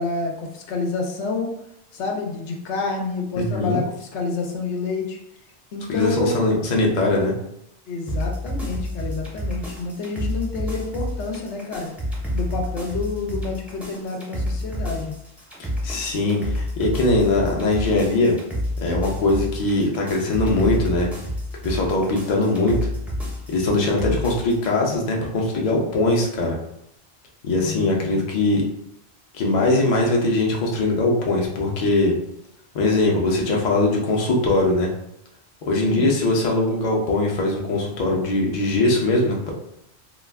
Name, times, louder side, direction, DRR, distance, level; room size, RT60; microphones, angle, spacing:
voice 1, 0.0-1.5 1.9-5.2 5.7-6.6 7.9-11.9 12.3-15.1 23.9-24.2 27.5-28.2 35.7-36.1, left 3 dB, 85° left, 1 dB, 0.9 m, -28 dB
voice 2, 3.4-3.8 5.9-7.3 15.6-18.3 18.8-21.1 21.6-22.7 23.5-26.6 27.4-28.6 29.3-32.1 32.7-34.9 35.7-39.5, left 2 dB, 50° left, -1 dB, 0.6 m, -21 dB
sound 1, 8.1-24.7, left 1 dB, ahead, 0.4 m, -29 dB
2.3 x 2.3 x 3.3 m, 0.78 s
omnidirectional pair, 1.1 m